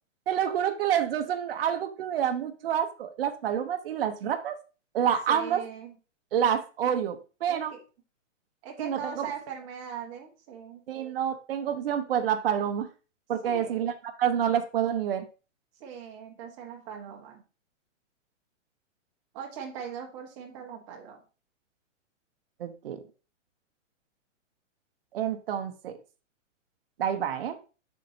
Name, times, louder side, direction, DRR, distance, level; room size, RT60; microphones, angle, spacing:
voice 1, 0.3-4.6 4.9-5.6 6.3-7.7 8.8-9.3 10.9-12.9 13.3-13.9 14.2-15.2 22.6-23.0 25.1-25.9 27.0-27.6, right 9 dB, 45° right, 0.9 m, -28 dB
voice 2, 5.3-5.9 7.5-7.8 8.6-10.8 13.4-13.9 15.8-17.4 19.3-21.2, right 7 dB, 25° right, 1.3 m, -40 dB
7.5 x 6.3 x 2.7 m
hypercardioid pair, 170°, 39 cm